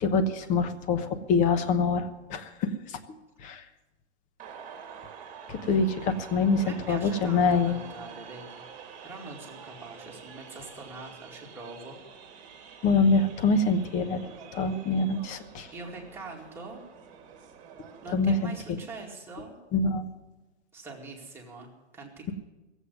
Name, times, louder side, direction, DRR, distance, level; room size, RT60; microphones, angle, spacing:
voice 1, 0.0-3.0 3.4-3.6 5.5-7.8 12.8-14.2 14.5-15.7 18.1-18.8 19.7-20.0, left 4 dB, 25° left, 10 dB, 1.0 m, -25 dB
sound 1, 4.4-18.6, right 7 dB, 25° right, 2.0 m, -47 dB
voice 2, 6.6-8.5 9.0-12.0 15.7-16.8 18.0-19.6 20.7-22.3, right 3 dB, 5° right, -2 dB, 2.3 m, -43 dB
15.5 x 8.2 x 9.5 m, 1.1 s
hypercardioid pair, 145°, 33 cm